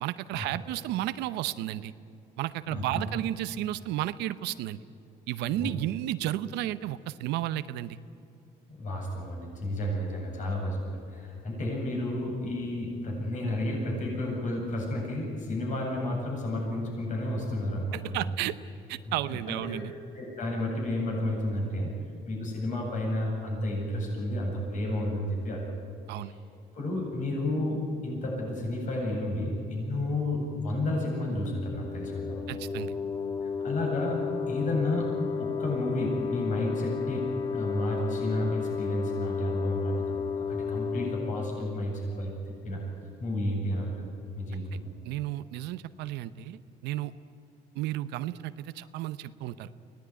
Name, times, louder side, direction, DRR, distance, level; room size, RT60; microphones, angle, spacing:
voice 1, 0.0-1.9 2.4-4.8 5.3-8.0 17.9-18.6 18.9-19.9 26.1-26.3 32.5-32.9 44.5-44.8 45.0-47.1 47.7-49.7, right 14 dB, 90° right, 13 dB, 0.8 m, -33 dB
voice 2, 2.7-3.1 5.6-5.7 8.8-18.2 19.1-19.2 19.5-19.8 20.1-21.9 22.3-25.6 26.8-32.4 33.4-35.1 35.4-37.3 37.5-42.3 42.6-42.8 43.2-44.1 44.4-44.9, left 1 dB, 50° left, -1 dB, 8.0 m, -31 dB
sound 1, 31.4-42.9, left 6 dB, 20° left, 1.3 m, -33 dB
23.5 x 18.0 x 9.6 m, 2.7 s
cardioid pair, 110°, 17 cm